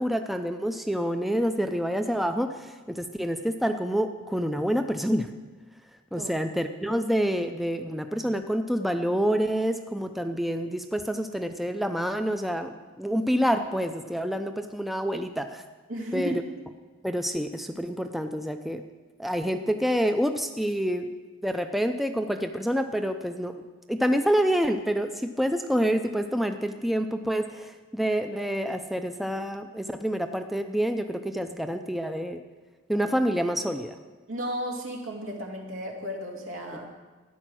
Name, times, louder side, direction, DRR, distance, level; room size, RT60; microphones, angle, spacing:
voice 1, 0.0-5.3 6.1-15.6 16.1-16.4 17.0-18.8 19.2-21.1 21.4-23.6 23.9-32.4 32.9-34.0 36.7-36.8, equal, ahead, 7 dB, 0.4 m, -27 dB
voice 2, 15.9-16.4 34.3-36.9, equal, 80° right, 1 dB, 2.4 m, -34 dB
13.5 x 10.0 x 6.2 m, 1.3 s
head